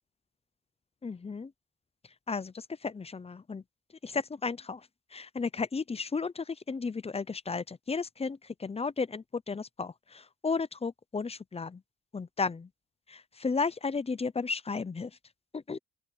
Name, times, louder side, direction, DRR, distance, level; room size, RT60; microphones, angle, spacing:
voice 1, 1.0-1.5 2.3-3.6 4.0-4.9 5.1-8.4 8.6-11.8 12.1-12.7 13.1-15.1 15.5-15.8, left 4 dB, 20° left, 0.7 m, -34 dB
open air
cardioid pair, 90°, 30 cm